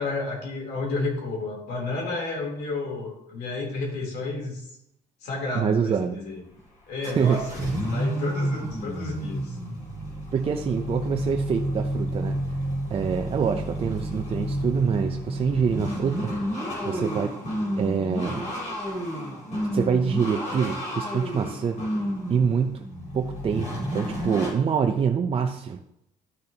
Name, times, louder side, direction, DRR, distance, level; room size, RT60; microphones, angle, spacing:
voice 1, 0.0-4.6 5.2-6.3 6.9-9.6, left 3 dB, 80° left, -1 dB, 3.4 m, -31 dB
voice 2, 5.5-6.2 7.2-7.8 10.3-12.6 12.9-17.3 17.7-18.4 18.8-19.0 19.7-21.8 22.3-25.8, right 6 dB, 35° right, 4 dB, 0.6 m, -26 dB
sound 1, 6.3-6.6 7.0-24.5, equal, 45° left, 3.7 m, -30 dB
12.0 x 6.4 x 2.9 m, 0.78 s
cardioid pair, 110°, 17 cm